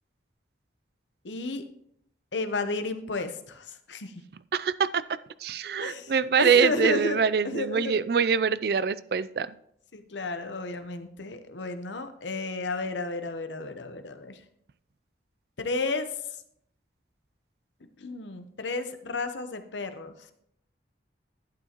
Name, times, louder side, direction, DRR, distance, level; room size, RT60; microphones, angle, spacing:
voice 1, 1.2-1.6 2.3-4.2 5.8-6.1 6.4-7.9 9.9-14.4 15.6-16.2 18.0-20.3, left 3 dB, 80° left, 8 dB, 0.9 m, -32 dB
voice 2, 4.5-5.0 5.4-9.5, right 6 dB, 55° right, 17 dB, 0.3 m, -24 dB
11.5 x 9.0 x 3.0 m, 0.71 s
head